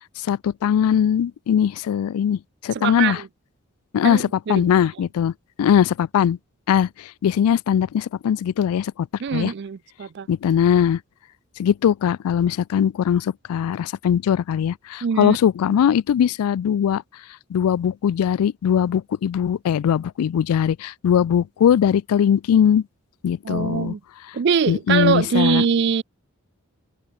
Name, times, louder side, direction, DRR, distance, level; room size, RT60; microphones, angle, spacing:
voice 1, 0.2-3.2 3.9-5.3 5.6-6.4 6.7-9.5 10.3-11.0 11.6-17.0 17.5-22.8 23.2-23.9 24.7-25.7, left 8 dB, 85° left, 0.3 m, -20 dB
voice 2, 2.7-3.3 4.0-4.7 9.2-10.3 15.0-15.4 23.4-24.0 24.3-26.0, right 6 dB, 50° right, 0.4 m, -23 dB
head